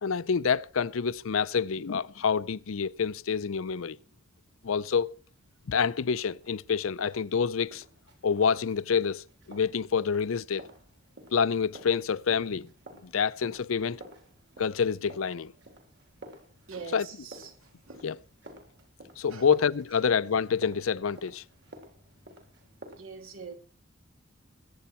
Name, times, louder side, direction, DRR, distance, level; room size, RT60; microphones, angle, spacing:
voice 1, 0.0-4.0 4.6-5.1 5.7-7.8 8.2-10.6 11.3-12.7 13.0-14.0 14.6-15.5 16.9-17.1 18.0-18.2 19.2-21.4, left 6 dB, 80° left, 0.5 m, -27 dB
sound 1, 6.3-23.0, right 1 dB, 55° right, 3.5 m, -52 dB
voice 2, 16.7-18.0 19.3-19.5 22.9-23.5, right 5 dB, 90° right, 2.7 m, -44 dB
21.5 x 8.7 x 4.4 m
head